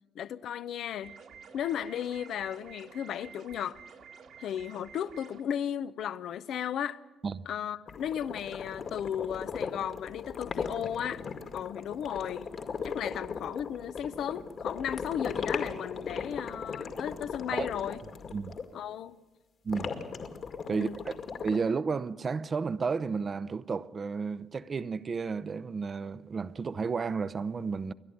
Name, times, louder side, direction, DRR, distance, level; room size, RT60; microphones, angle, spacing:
voice 1, 0.1-1.2 1.5-3.8 4.4-7.0 7.5-11.3 11.5-12.5 12.8-18.0 18.7-19.2 20.7-21.0, left 9 dB, 75° left, 0.6 m, -35 dB
sound 1, 1.0-5.4, right 6 dB, 75° right, 2.3 m, -50 dB
sound 2, 7.9-18.6 19.7-21.6, left 5 dB, 55° left, 2.1 m, -37 dB
voice 2, 20.7-21.1 21.4-27.9, right 5 dB, 40° right, 0.7 m, -32 dB
28.5 x 11.5 x 9.4 m
cardioid pair, 90°, 0 cm